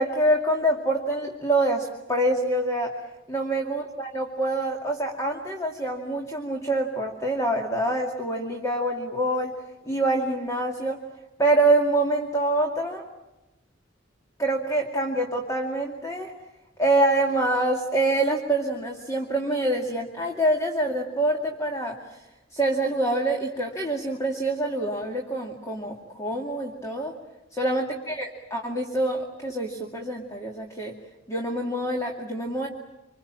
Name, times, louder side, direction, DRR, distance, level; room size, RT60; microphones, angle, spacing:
voice 1, 0.0-3.0 3.3-11.0 11.4-13.1 14.4-16.3 16.8-22.2 22.5-27.1 27.5-30.9 31.3-32.7, right 1 dB, 15° left, 1 dB, 2.4 m, -26 dB
27.5 x 25.5 x 7.6 m, 1.0 s
head